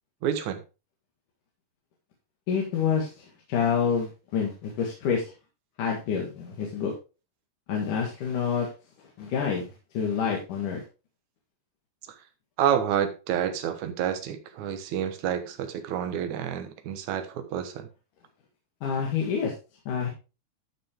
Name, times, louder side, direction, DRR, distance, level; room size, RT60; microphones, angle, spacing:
voice 1, 0.2-0.6 12.6-17.9, right 9 dB, 65° right, 7 dB, 2.3 m, -29 dB
voice 2, 2.5-5.2 5.8-6.9 7.7-8.7 9.2-9.7 9.9-10.8 18.8-19.5 19.9-20.1, left 6 dB, 65° left, -1 dB, 3.2 m, -27 dB
12.5 x 6.0 x 3.6 m, 0.31 s
omnidirectional pair, 4.2 m